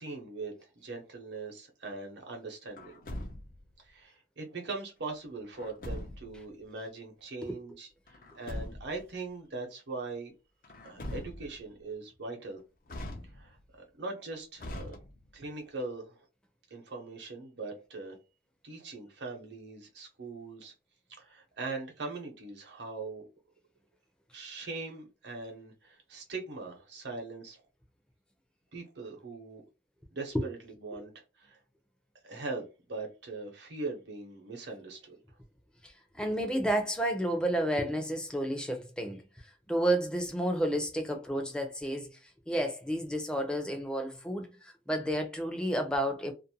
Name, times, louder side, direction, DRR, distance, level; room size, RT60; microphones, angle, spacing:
voice 1, 0.0-3.0 3.8-10.3 10.8-12.6 13.3-15.0 15.3-16.2 16.7-18.2 18.6-20.7 21.2-23.3 24.3-27.6 28.7-29.6 30.1-31.6 32.2-35.1, right 3 dB, 85° right, 0.8 m, -41 dB
Truck, 2.8-3.7 5.6-6.4 8.1-9.0 10.6-11.7 12.9-13.7 14.6-15.5, left 1 dB, 50° left, 0.6 m, -41 dB
voice 2, 35.8-46.3, right 1 dB, 5° left, 0.5 m, -31 dB
2.5 x 2.1 x 2.7 m
head